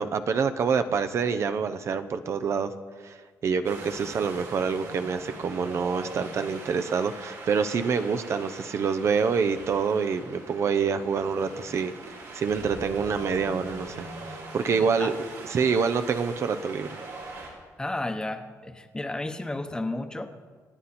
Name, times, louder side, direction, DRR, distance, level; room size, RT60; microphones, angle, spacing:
voice 1, 0.0-2.7 3.0-3.2 3.4-15.1 15.5-17.0, right 5 dB, 50° right, 9 dB, 0.8 m, -26 dB
Wind, 3.6-17.5, right 2 dB, 80° right, 5.5 m, -42 dB
voice 2, 14.6-15.1 17.8-20.3, left 2 dB, 15° left, 7 dB, 1.0 m, -33 dB
27.5 x 9.6 x 4.3 m, 1.5 s
cardioid pair, 120°, 6 cm